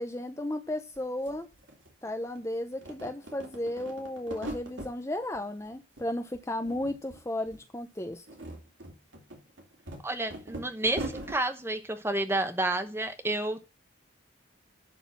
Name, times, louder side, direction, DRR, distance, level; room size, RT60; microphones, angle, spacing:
voice 1, 0.0-1.5 2.0-8.2, left 1 dB, 15° left, 0.6 m, -34 dB
sound 1, 0.9-1.0 1.2-2.4 2.7-4.9 5.3-6.1 6.3-7.2 7.5-7.6 8.1-11.4, right 1 dB, 65° right, 2.5 m, -41 dB
voice 2, 10.0-13.7, right 2 dB, 10° right, 0.9 m, -30 dB
11.5 x 4.0 x 7.2 m
head